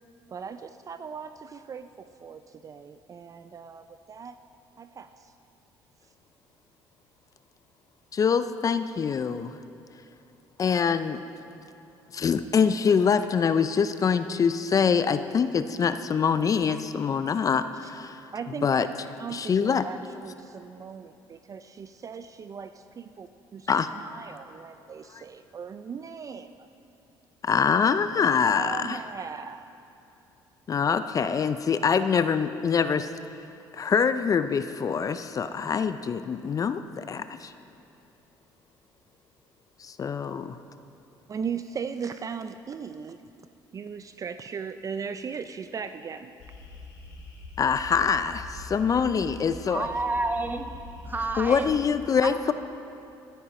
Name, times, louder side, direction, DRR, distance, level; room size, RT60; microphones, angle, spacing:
voice 1, 0.3-4.4 4.8-5.3 17.8-17.9 18.3-18.7 19.2-26.7 28.2-29.7 41.3-43.2 43.7-46.3, right 6 dB, 35° right, 10 dB, 0.4 m, -38 dB
voice 2, 8.1-9.6 10.6-11.2 12.1-18.2 18.6-18.9 19.3-19.9 23.7-23.9 25.1-25.2 27.4-29.0 30.7-33.1 33.7-37.5 39.8-40.6 47.6-49.9 51.4-52.5, left 6 dB, 40° left, 11 dB, 0.4 m, -24 dB
sound 1, 46.4-51.8, left 2 dB, 85° left, 2.4 m, -43 dB
voice 3, 49.7-50.8 51.0-51.7 52.2-52.5, right 2 dB, 20° right, 6 dB, 1.0 m, -30 dB
13.5 x 10.0 x 4.2 m, 2.7 s
supercardioid pair, 80°, 9 cm